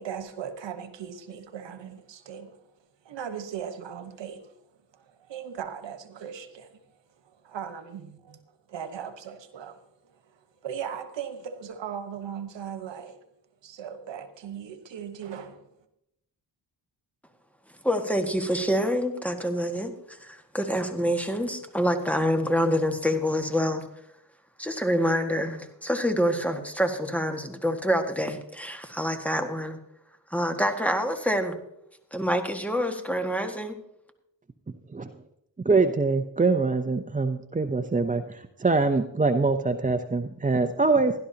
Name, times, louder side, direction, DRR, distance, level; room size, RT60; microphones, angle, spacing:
voice 1, 0.0-2.6 3.0-4.5 4.9-6.8 7.4-8.4 8.7-9.8 10.1-10.2 10.6-13.2 13.6-15.7, right 8 dB, 80° right, 1.3 m, -38 dB
voice 2, 17.8-23.8 24.6-29.8 30.3-31.6 32.1-33.8, equal, 5° left, 1.7 m, -26 dB
voice 3, 35.6-41.1, right 3 dB, 20° right, 0.6 m, -24 dB
17.0 x 12.0 x 2.9 m
cardioid pair, 65°, 44 cm